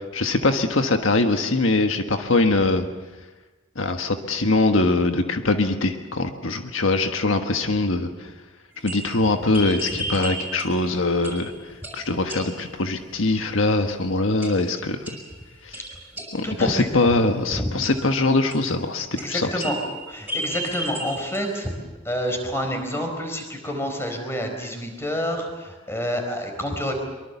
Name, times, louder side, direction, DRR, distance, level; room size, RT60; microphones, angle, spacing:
voice 1, 0.1-2.9 3.7-8.3 8.8-11.5 11.9-15.2 15.6-15.8 16.3-19.6, left 2 dB, 75° left, 6 dB, 1.5 m, -22 dB
sound 1, 8.7-10.9 11.2-11.6 11.8-12.8 14.4-14.8 15.0-16.6 17.8-18.9 19.2-21.6, right 1 dB, 5° right, 6.3 m, -34 dB
voice 2, 16.4-17.1 17.5-17.7 19.1-19.8 20.1-21.7 22.0-27.0, equal, 10° left, 4 dB, 4.5 m, -28 dB
24.0 x 24.0 x 7.1 m, 1.2 s
head